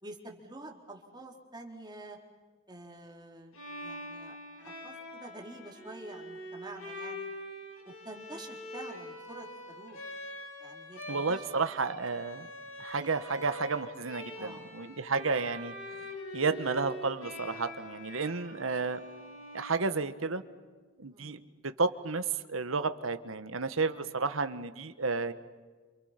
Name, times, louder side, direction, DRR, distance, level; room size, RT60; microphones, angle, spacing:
voice 1, 0.0-2.2 2.7-3.6 3.8-7.3 7.9-10.0 10.6-11.4 14.3-14.7 18.3-18.4 21.1-21.4, right 2 dB, 20° right, 1 dB, 3.8 m, -48 dB
Bowed string instrument, 3.5-20.5, left 1 dB, 90° left, 7.7 m, -44 dB
voice 2, 11.1-12.5 12.8-15.7 16.3-19.0 19.5-20.4 21.0-21.4 21.8-25.3, right 4 dB, 85° right, 11 dB, 1.4 m, -32 dB
28.5 x 28.5 x 5.9 m, 1.4 s
head